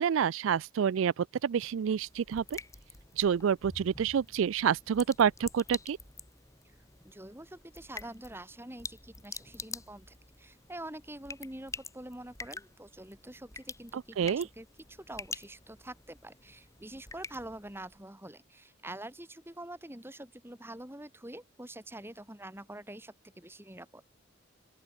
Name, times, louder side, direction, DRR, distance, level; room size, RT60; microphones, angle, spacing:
voice 1, 0.0-2.6 3.2-6.0 13.9-14.5, right 7 dB, 75° right, 0.4 m, -28 dB
sound 1, 1.6-18.0, left 4 dB, 15° left, 3.8 m, -47 dB
voice 2, 7.0-24.0, right 1 dB, 10° right, 3.3 m, -46 dB
open air
head